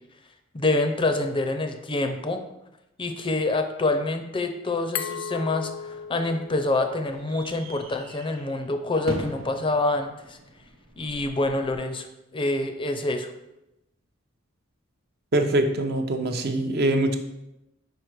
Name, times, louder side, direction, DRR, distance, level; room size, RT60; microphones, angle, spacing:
voice 1, 0.5-2.4 3.0-10.4 11.0-12.1 12.3-13.3, left 2 dB, 25° left, 7 dB, 0.5 m, -26 dB
Glass, 5.0-7.7, left 7 dB, 75° left, 0.5 m, -36 dB
sound 1, 5.8-11.8, right 1 dB, 80° right, 1.1 m, -41 dB
voice 2, 15.3-17.2, right 1 dB, 55° right, 6 dB, 0.6 m, -23 dB
5.0 x 4.8 x 4.6 m, 0.90 s
head